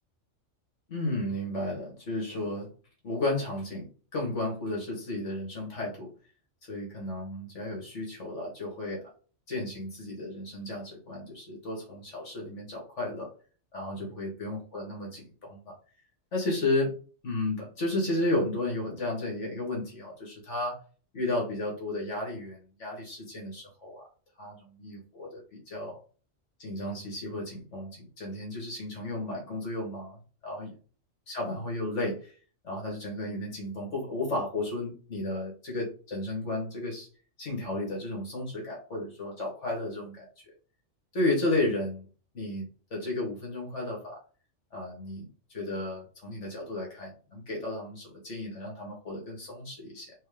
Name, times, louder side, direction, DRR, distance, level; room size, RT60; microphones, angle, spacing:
voice 1, 0.9-2.7 3.0-6.1 6.7-9.0 9.5-13.3 13.7-15.7 16.3-16.9 17.2-20.8 21.1-24.0 24.4-26.0 26.6-30.2 30.4-30.7 31.3-32.3 32.6-37.1 37.4-40.3 41.1-42.1 42.3-44.2 44.7-50.1, left 2 dB, 65° left, -3 dB, 2.0 m, -33 dB
4.5 x 3.0 x 3.5 m, 0.38 s
omnidirectional pair, 1.3 m